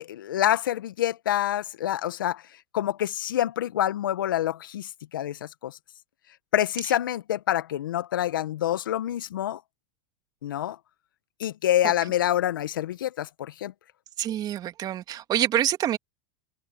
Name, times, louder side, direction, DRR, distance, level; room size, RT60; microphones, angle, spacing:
voice 1, 0.0-2.4 2.7-5.8 6.5-9.6 10.4-10.8 11.4-13.7, left 12 dB, 80° left, 1.8 m, -27 dB
voice 2, 14.2-16.0, right 11 dB, 35° right, 2.9 m, -26 dB
hypercardioid pair, 100°, 11 cm